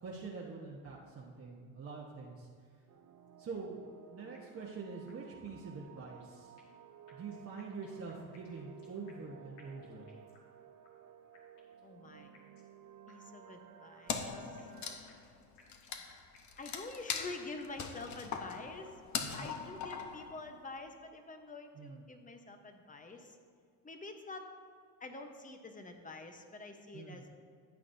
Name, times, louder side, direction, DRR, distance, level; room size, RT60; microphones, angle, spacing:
voice 1, 0.0-2.5 3.4-6.5 7.1-10.1 19.2-19.6 21.7-22.0 26.9-27.3, right 4 dB, 35° right, -4 dB, 1.2 m, -45 dB
sound 1, 2.9-15.0, right 9 dB, 50° right, 0.9 m, -56 dB
sound 2, 4.3-4.7 5.1-5.2 5.4-5.5 5.9-6.8 7.1-9.3 9.6-10.5 10.8-10.9 11.3-11.8 12.3-12.7 13.1-13.2 13.4-13.5 13.9-14.8 15.1-17.3 17.6-18.5 18.8-18.9 19.3-19.8, left 4 dB, 70° left, 2.3 m, -64 dB
voice 2, 11.8-12.4 13.1-14.7 16.6-19.0 19.3-23.4 23.8-24.5 25.0-27.3, left 3 dB, 20° left, 5 dB, 1.0 m, -47 dB
Wood, 14.1-20.8, left 6 dB, 45° left, 0.9 m, -41 dB
14.0 x 8.3 x 2.7 m, 2.2 s
supercardioid pair, 100°, 42 cm